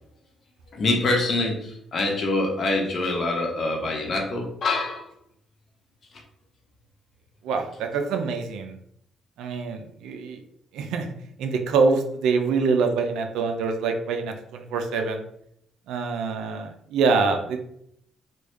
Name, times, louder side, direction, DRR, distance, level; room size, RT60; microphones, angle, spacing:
voice 1, 0.7-5.1, left 2 dB, 50° left, 0 dB, 0.9 m, -25 dB
voice 2, 7.4-8.8 9.4-10.4 10.7-11.1 11.4-15.2 15.9-17.6, right 4 dB, 90° right, 5 dB, 0.4 m, -25 dB
3.3 x 2.2 x 3.1 m, 0.72 s
cardioid pair, 90°, 0 cm